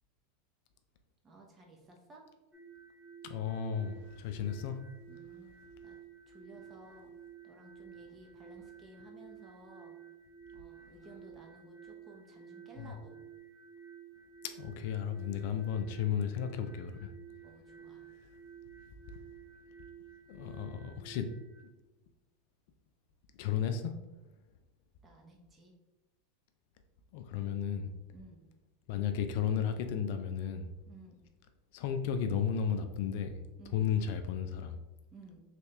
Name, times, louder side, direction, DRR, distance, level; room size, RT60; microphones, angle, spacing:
voice 1, 1.2-2.3 5.1-6.0 6.3-7.1 7.4-10.0 10.5-13.1 17.4-18.0 25.0-25.7 28.1-28.4 30.9-31.2 33.6-33.9 35.1-35.4, right 2 dB, 25° right, 1 dB, 0.9 m, -55 dB
sound 1, 2.5-21.6, right 8 dB, ahead, 1.2 m, -53 dB
voice 2, 3.2-4.8 12.8-12.9 14.6-17.1 20.3-21.3 23.4-23.9 27.1-27.9 28.9-30.7 31.7-33.4 33.7-34.8, left 8 dB, 60° left, 7 dB, 0.3 m, -34 dB
3.3 x 2.8 x 3.2 m, 1.0 s
hypercardioid pair, 95°, 0 cm